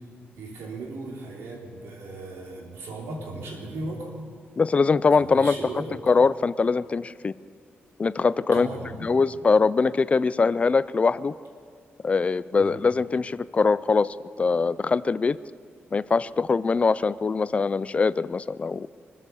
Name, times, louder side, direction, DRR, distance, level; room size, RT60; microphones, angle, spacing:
voice 1, 0.3-4.1 5.2-6.0 8.5-9.1 12.6-12.8, right 2 dB, 85° right, -1 dB, 3.4 m, -37 dB
voice 2, 4.6-5.5 6.1-7.3 8.0-8.7 9.0-11.3 12.0-15.4 15.9-18.9, left 4 dB, 30° left, 18 dB, 0.3 m, -22 dB
24.5 x 8.2 x 7.0 m, 2.1 s
cardioid pair, 110°, 4 cm